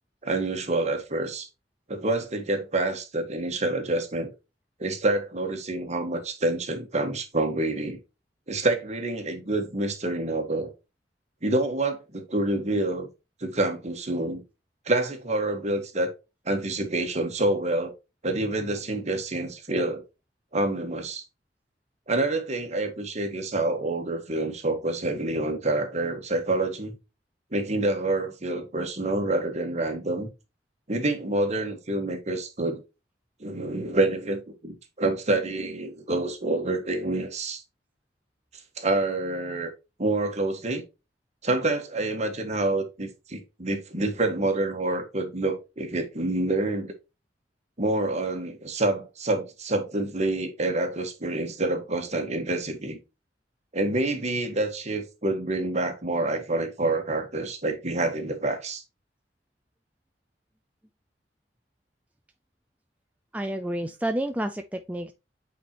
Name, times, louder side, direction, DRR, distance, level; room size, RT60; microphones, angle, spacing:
voice 1, 0.2-1.5 1.9-4.3 4.8-8.0 8.5-10.7 11.4-13.1 13.4-14.4 14.9-16.1 16.4-17.9 18.2-20.0 20.5-21.2 22.1-26.9 27.5-30.3 30.9-32.8 33.4-37.6 38.8-39.7 40.0-40.8 41.4-46.9 47.8-53.0 53.7-58.8, right 2 dB, 40° right, 1.5 m, -27 dB
voice 2, 63.3-65.1, right 1 dB, 10° right, 0.4 m, -30 dB
8.4 x 4.3 x 2.9 m
head